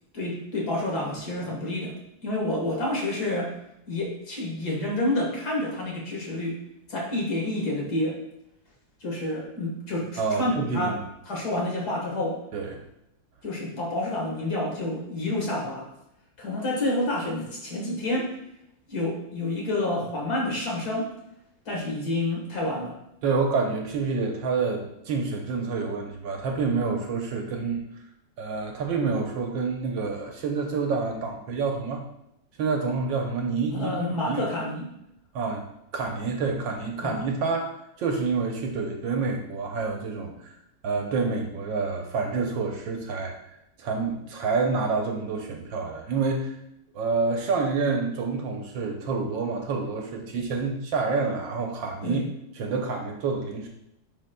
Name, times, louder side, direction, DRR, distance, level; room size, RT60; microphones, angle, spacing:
voice 1, 0.1-2.0 2.2-3.5 3.9-6.6 6.9-8.2 9.0-11.0 11.3-12.4 13.4-15.9 16.4-18.3 18.9-21.1 21.7-22.9 33.7-34.9 37.0-37.2 52.0-52.2, left 1 dB, 50° left, -2 dB, 1.9 m, -29 dB
voice 2, 10.2-11.0 12.5-12.8 23.2-27.8 28.4-32.0 32.6-33.9 34.3-34.5 35.3-35.6 35.9-37.7 38.0-40.6 40.8-43.3 43.8-46.5 46.9-52.2 52.6-53.7, right 4 dB, 70° right, 2 dB, 1.4 m, -28 dB
10.0 x 4.3 x 2.2 m, 0.82 s
omnidirectional pair, 2.3 m